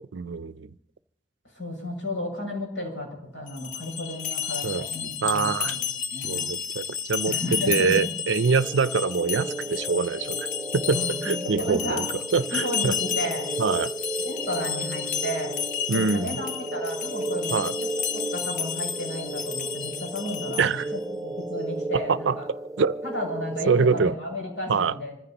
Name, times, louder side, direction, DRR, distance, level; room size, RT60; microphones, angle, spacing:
voice 1, 0.1-0.7 4.6-4.9 5.2-5.7 6.2-7.3 7.7-10.5 10.7-12.0 12.3-12.9 13.6-13.9 15.9-16.4 17.5-17.7 20.6-20.9 22.1-22.4 22.8-23.0 23.7-24.1 24.7-25.0, right 5 dB, 90° right, 16 dB, 0.5 m, -24 dB
voice 2, 1.5-6.5 7.3-8.0 10.9-12.0 12.5-13.5 14.2-15.5 15.9-17.7 18.1-22.5 23.0-25.1, left 1 dB, 85° left, -1 dB, 6.6 m, -33 dB
sound 1, 3.5-20.9, left 8 dB, 45° left, 0.6 m, -32 dB
sound 2, 8.6-24.0, right 2 dB, 20° right, 0.5 m, -34 dB
26.5 x 15.0 x 2.9 m, 0.78 s
head